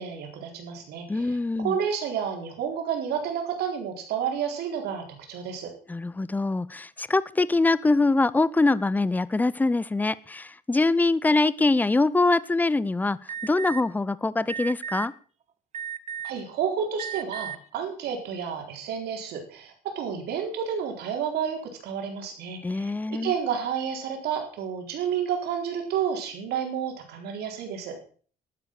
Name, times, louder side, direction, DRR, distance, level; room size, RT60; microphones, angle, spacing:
voice 1, 0.0-5.7 16.2-28.0, right 7 dB, 80° right, 3 dB, 4.1 m, -30 dB
voice 2, 1.1-1.8 5.9-15.1 22.6-23.3, left 3 dB, 10° left, 19 dB, 0.6 m, -24 dB
Alarm, 13.3-13.8 14.5-15.1 15.7-16.4 17.0-17.6, right 8 dB, 45° right, 1.0 m, -34 dB
12.0 x 9.8 x 6.5 m, 0.43 s
cardioid pair, 120°, 17 cm